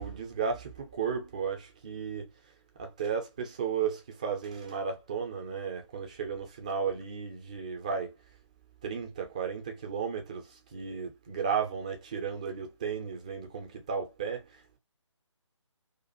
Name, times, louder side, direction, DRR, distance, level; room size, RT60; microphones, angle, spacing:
voice 1, 0.0-2.3 2.8-8.1 8.8-14.8, right 6 dB, 15° right, 0.4 m, -34 dB
2.4 x 2.3 x 2.5 m
figure-of-eight pair, 150°, 16 cm